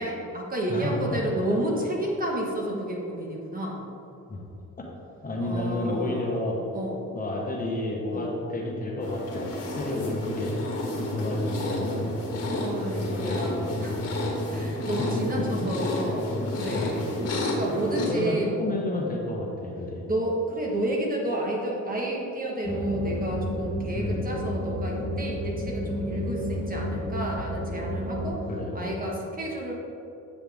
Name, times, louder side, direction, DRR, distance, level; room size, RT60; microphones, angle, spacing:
voice 1, 0.0-3.8 5.4-6.3 6.7-7.1 8.1-8.3 12.5-14.0 14.5-18.5 20.0-28.5 28.7-29.7, right 1 dB, 30° right, -2 dB, 1.4 m, -31 dB
voice 2, 0.7-1.2 4.3-4.4 5.2-6.6 7.1-10.5 11.1-12.1 13.0-13.7 13.9-14.2 15.0-15.5 16.7-17.0 18.0-20.1 23.9-24.3 28.5-29.0, left 2 dB, 30° left, -2 dB, 1.2 m, -31 dB
sound 1, 9.0-18.1, left 1 dB, 50° left, 1.7 m, -30 dB
sound 2, 22.6-28.3, equal, 5° right, 1.1 m, -31 dB
8.4 x 5.7 x 3.5 m, 2.8 s
cardioid pair, 95°, 31 cm